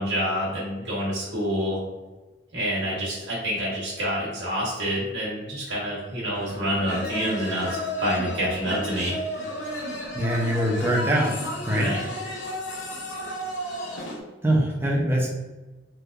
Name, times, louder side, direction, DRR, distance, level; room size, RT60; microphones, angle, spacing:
voice 1, 0.0-1.8 2.5-9.2 11.7-12.0, equal, 85° right, -6 dB, 1.0 m, -27 dB
sound 1, 6.3-14.2, left 1 dB, 80° left, 0.7 m, -33 dB
voice 2, 10.1-11.3 11.7-11.9 14.4-15.3, right 1 dB, 10° right, -2 dB, 0.5 m, -23 dB
3.4 x 2.8 x 2.3 m, 1.2 s
head